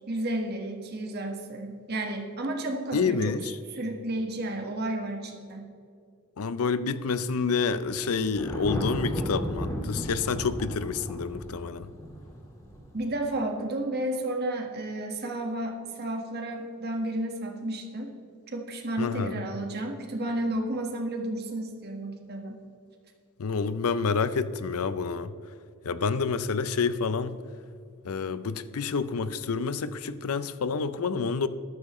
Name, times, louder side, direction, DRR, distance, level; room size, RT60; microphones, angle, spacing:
voice 1, 0.1-3.4 3.7-5.7 12.9-18.1 18.5-22.6, right 1 dB, 45° right, 1.5 m, -32 dB
voice 2, 2.9-3.6 6.4-11.9 19.0-19.4 23.4-25.3 25.8-27.4 28.0-31.5, left 5 dB, 80° left, 0.5 m, -28 dB
Thunder, 7.7-13.1, equal, 15° left, 1.8 m, -34 dB
13.5 x 12.0 x 3.1 m
head